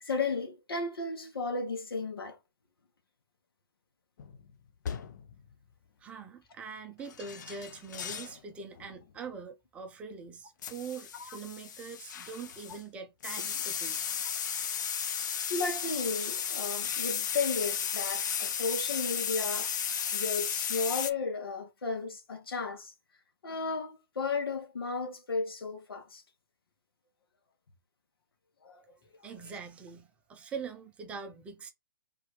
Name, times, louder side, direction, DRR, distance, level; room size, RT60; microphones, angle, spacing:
voice 1, 0.0-2.4 11.2-11.4 15.5-19.7 20.1-22.9 23.4-26.2 28.6-28.8, left 4 dB, 90° left, 1.5 m, -34 dB
sound 1, 4.2-4.4 4.9-5.3 7.1-8.4 8.8-9.0 10.6-12.8 13.2-21.1, left 8 dB, 55° left, 0.6 m, -34 dB
voice 2, 6.0-14.0 28.8-29.0 29.2-31.7, right 5 dB, 10° right, 0.6 m, -43 dB
3.4 x 3.3 x 4.6 m
hypercardioid pair, 160°, 12 cm